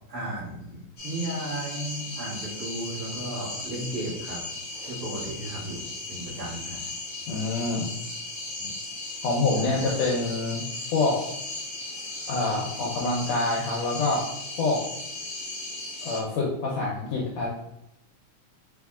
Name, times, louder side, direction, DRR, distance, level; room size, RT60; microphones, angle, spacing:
voice 1, 0.1-4.4 4.9-5.8 6.1-6.8 8.6-8.7 9.6-9.9, right 1 dB, 35° right, -9 dB, 1.8 m, -35 dB
sound 1, 1.0-16.2, left 2 dB, 45° left, 1.0 m, -36 dB
voice 2, 7.3-7.9 9.2-10.6 10.9-11.2 12.3-14.3 14.6-14.8 16.0-17.5, left 3 dB, 70° left, -3 dB, 1.7 m, -26 dB
4.5 x 3.9 x 2.4 m, 0.83 s
omnidirectional pair, 3.4 m